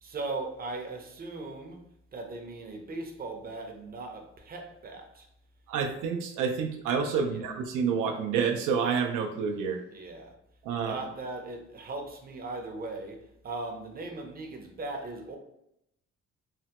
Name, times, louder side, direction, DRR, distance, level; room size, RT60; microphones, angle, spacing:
voice 1, 0.0-1.8 2.1-5.3 7.3-7.5 9.9-10.3 10.8-15.4, right 3 dB, 30° right, 0.6 m, -38 dB
voice 2, 5.7-9.8 10.6-11.0, right 6 dB, 85° right, 0.5 m, -28 dB
3.3 x 2.1 x 2.8 m
cardioid pair, 90°, 30 cm